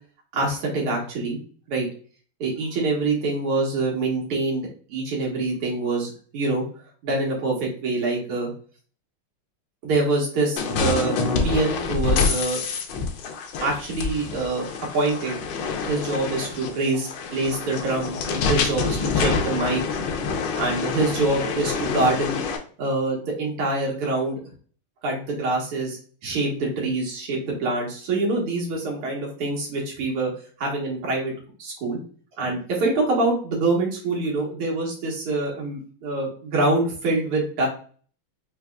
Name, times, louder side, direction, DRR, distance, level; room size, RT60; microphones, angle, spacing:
voice 1, 0.3-1.4 1.7-1.9 2.4-6.6 7.0-8.5 9.8-11.1 11.4-12.6 13.6-14.7 14.9-15.4 15.8-19.8 20.6-22.4 22.8-24.4 25.0-30.3 30.6-31.3 31.6-32.0 32.4-37.7, right 2 dB, 90° right, -2 dB, 2.2 m, -25 dB
sound 1, 10.6-22.6, left 5 dB, 75° left, 1.4 m, -26 dB
4.7 x 2.9 x 2.3 m, 0.43 s
omnidirectional pair, 2.4 m